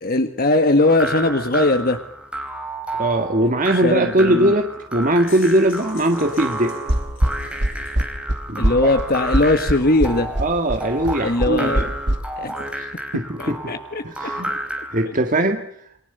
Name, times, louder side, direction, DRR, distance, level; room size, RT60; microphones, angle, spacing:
voice 1, 0.0-2.0 3.8-4.5 8.6-10.3 11.2-11.9 12.4-12.6 13.4-14.0, left 2 dB, 50° left, 7 dB, 1.7 m, -19 dB
sound 1, 0.8-15.1, right 1 dB, 5° right, 4.5 m, -31 dB
voice 2, 3.0-6.8 8.5-8.9 10.4-11.9 12.8-13.7 14.0-14.5 14.9-15.7, right 1 dB, 45° right, 5 dB, 1.8 m, -20 dB
sound 2, 5.0-8.0, left 10 dB, 85° left, 6.9 m, -46 dB
sound 3, 6.9-12.2, right 1 dB, 60° right, 2.3 m, -21 dB
29.0 x 23.0 x 6.8 m, 0.64 s
head